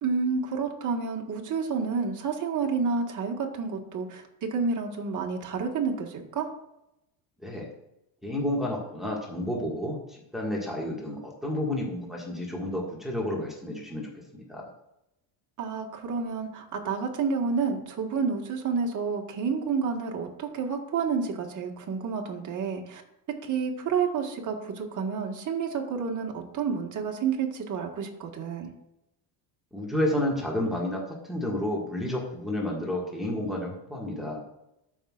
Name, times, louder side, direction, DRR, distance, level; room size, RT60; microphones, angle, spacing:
voice 1, 0.0-6.5 15.6-23.0 23.4-28.7, right 5 dB, 40° right, 1 dB, 1.6 m, -29 dB
voice 2, 8.2-14.1 14.3-14.7 29.7-34.4, left 1 dB, ahead, -3 dB, 1.8 m, -31 dB
14.0 x 5.7 x 2.5 m, 0.86 s
cardioid pair, 110°, 47 cm